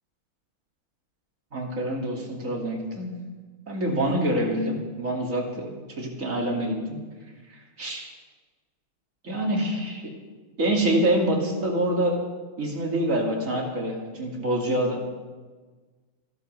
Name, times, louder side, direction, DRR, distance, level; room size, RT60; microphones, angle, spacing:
voice 1, 1.5-3.1 3.7-7.0 7.8-8.1 9.2-10.1 10.6-12.2 12.6-15.0, right 1 dB, 35° right, 0 dB, 2.9 m, -26 dB
14.5 x 12.0 x 6.7 m, 1.4 s
omnidirectional pair, 2.4 m